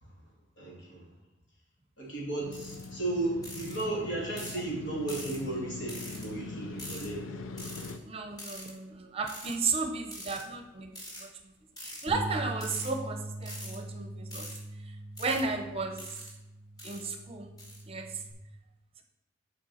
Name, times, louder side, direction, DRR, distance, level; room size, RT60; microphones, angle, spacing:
voice 1, 0.6-1.1 2.0-7.2, right 2 dB, 70° left, -5 dB, 3.0 m, -34 dB
Motorcycle, 2.4-8.0, left 3 dB, 90° left, 0.5 m, -42 dB
sound 1, 2.5-2.8 3.4-3.8 4.4-4.6 5.1-5.4 5.9-6.3 6.8-7.1 7.6-7.9 8.4-8.7 9.3-9.5 10.1-10.4 10.9-11.2 11.8-12.1 12.5-12.9 13.4-13.8 14.3-14.6 15.2-15.4 16.0-16.3 16.8-17.1 17.6-17.8, equal, 20° left, 1.7 m, -43 dB
voice 2, 8.0-10.9 11.2-11.3 11.8-14.5 15.2-16.0 16.8-17.5 17.9-18.1, right 4 dB, 30° right, 5 dB, 0.7 m, -34 dB
sound 2, 12.1-18.3, right 1 dB, 45° left, 1.5 m, -42 dB
7.4 x 4.6 x 5.6 m, 0.97 s
head